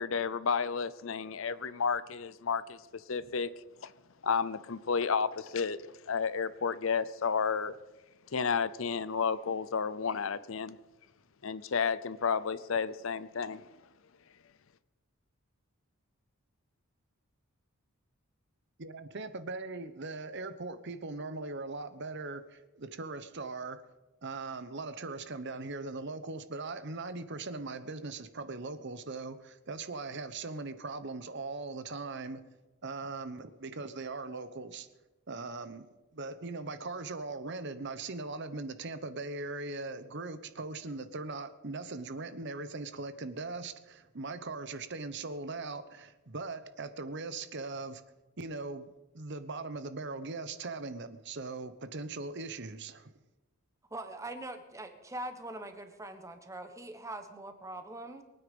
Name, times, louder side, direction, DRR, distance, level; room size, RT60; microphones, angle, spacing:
voice 1, 0.0-2.8 3.1-3.5 4.2-5.8 6.1-7.7 8.3-10.8 11.4-13.6, left 6 dB, 65° left, 0.6 m, -31 dB
voice 2, 18.8-23.8 24.2-32.4 32.8-34.9 35.3-35.9 36.1-48.0 48.4-53.1, right 3 dB, 55° right, 0.9 m, -40 dB
voice 3, 53.9-58.2, right 1 dB, 15° right, 1.4 m, -42 dB
23.0 x 9.5 x 5.4 m
head